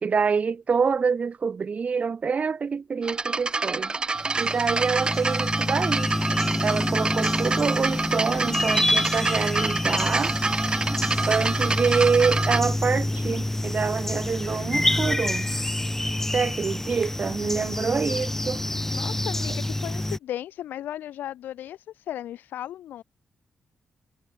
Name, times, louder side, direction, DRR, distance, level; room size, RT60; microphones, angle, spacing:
voice 1, 0.0-3.9 4.4-6.1 6.6-10.3 11.3-15.5 16.3-18.6, right 5 dB, 50° right, 1.3 m, -26 dB
sound 1, 3.0-12.6, right 3 dB, 30° right, 0.8 m, -27 dB
sound 2, 4.2-20.2, left 1 dB, 10° left, 1.2 m, -27 dB
voice 2, 18.9-23.0, left 12 dB, 85° left, 0.5 m, -36 dB
cardioid pair, 70°, 3 cm